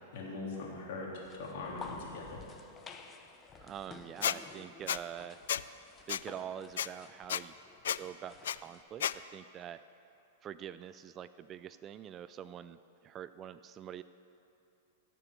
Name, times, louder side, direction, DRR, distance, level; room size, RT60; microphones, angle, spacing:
voice 1, 0.1-2.4, left 3 dB, 60° left, -3 dB, 3.4 m, -41 dB
sound 1, 1.2-8.8, left 5 dB, 20° left, 0.8 m, -52 dB
voice 2, 3.6-5.4 6.1-7.5 7.9-9.8 10.4-14.0, right 9 dB, 25° right, 14 dB, 0.3 m, -45 dB
Squeak, 4.2-4.4 4.9-5.0 5.5-5.6 6.1-6.2 6.8-6.9 7.3-7.4 7.9-8.0 8.4-8.6 9.0-9.1, left 10 dB, 80° left, 0.3 m, -31 dB
17.0 x 6.9 x 6.7 m, 2.9 s
hypercardioid pair, 135°, 0 cm